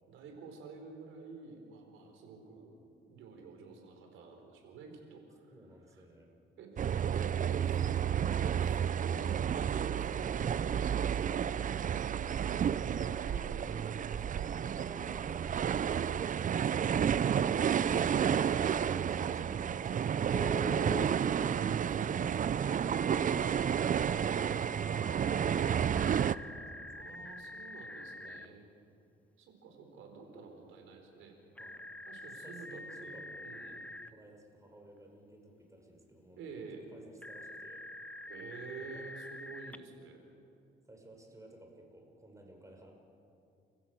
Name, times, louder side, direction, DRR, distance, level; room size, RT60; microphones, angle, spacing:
voice 1, 0.1-2.8 3.0-5.5 5.9-6.1 6.6-14.5 21.0-23.2 26.9-28.6 29.4-31.4 32.1-33.8 36.4-36.9 38.3-40.2, right 4 dB, 85° right, 3 dB, 4.7 m, -50 dB
voice 2, 5.5-6.3 12.7-13.2 14.6-21.1 22.3-23.2 23.5-27.3 28.2-28.5 31.6-33.5 34.1-37.9 38.7-39.0 40.9-42.9, right 1 dB, 15° right, 2 dB, 5.7 m, -56 dB
sound 1, 6.8-26.4, right 8 dB, 40° right, 0.5 m, -31 dB
Telephone, 20.3-21.1 22.9-28.5 31.6-34.1 37.2-39.8, left 2 dB, 5° left, 0.9 m, -45 dB
30.0 x 15.5 x 8.0 m, 2.6 s
cardioid pair, 90°, 20 cm